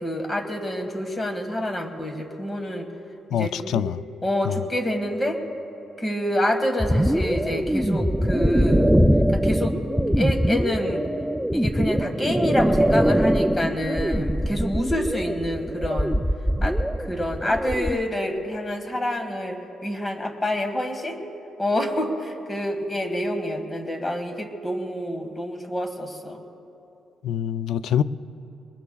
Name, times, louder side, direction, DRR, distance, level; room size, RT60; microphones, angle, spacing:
voice 1, 0.0-2.9 3.3-3.8 4.2-5.4 6.0-8.9 9.3-9.8 10.2-11.0 11.5-16.1 16.6-21.2 21.6-26.4, left 1 dB, 20° left, 5 dB, 1.6 m, -27 dB
voice 2, 3.3-4.0 4.4-4.6 27.2-28.0, left 10 dB, 75° left, 15 dB, 0.3 m, -25 dB
sound 1, 6.8-18.0, equal, ahead, 0.3 m, -22 dB
22.0 x 21.0 x 2.3 m, 2.8 s
cardioid pair, 90°, 0 cm